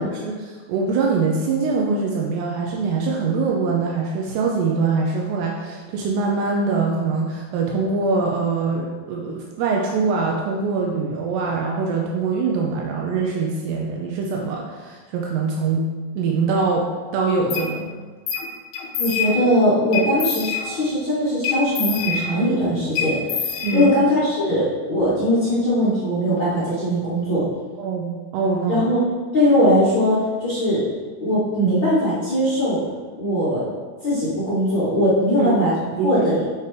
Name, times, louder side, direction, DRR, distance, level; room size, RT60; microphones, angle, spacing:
voice 1, 0.0-15.9 16.2-16.9 17.1-17.9 23.6-23.9 27.8-28.8 35.4-35.5 36.0-36.2, right 4 dB, 85° right, -1 dB, 2.6 m, -23 dB
sound 1, 17.5-17.7 18.3-18.5 18.7-19.5 19.9-20.9 21.4-22.6 23.0-24.2, left 6 dB, 75° left, 1.9 m, -26 dB
voice 2, 19.0-27.4 28.7-29.0 29.3-30.8 31.2-32.8 33.2-33.6 34.0-35.7 36.0-36.4, equal, 50° left, -12 dB, 1.5 m, -20 dB
9.4 x 4.8 x 3.3 m, 1.4 s
omnidirectional pair, 4.8 m